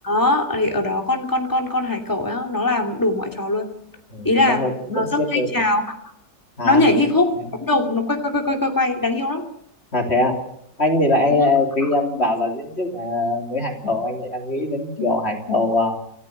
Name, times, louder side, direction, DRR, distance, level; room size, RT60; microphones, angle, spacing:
voice 1, 0.0-3.7 4.2-4.7 4.9-5.9 6.6-7.4 7.6-9.4 11.3-11.5, left 2 dB, 10° left, 2 dB, 2.8 m, -21 dB
voice 2, 4.1-5.5 6.6-6.9 9.9-10.4 10.8-16.0, left 2 dB, 40° left, 2 dB, 3.7 m, -22 dB
28.0 x 14.5 x 6.8 m, 0.73 s
omnidirectional pair, 1.7 m